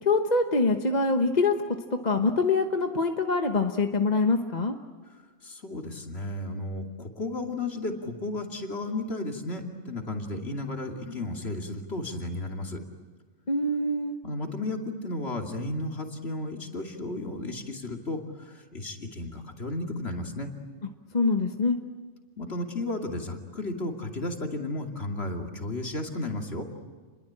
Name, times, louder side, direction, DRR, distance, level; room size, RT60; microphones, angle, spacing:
voice 1, 0.0-1.8 2.0-4.7 13.5-14.2 21.1-21.8, left 3 dB, 35° left, 5 dB, 1.3 m, -24 dB
voice 2, 5.4-12.8 14.2-20.5 22.4-26.6, left 2 dB, 55° left, 2 dB, 2.9 m, -33 dB
30.0 x 22.0 x 8.8 m, 1.5 s
omnidirectional pair, 1.3 m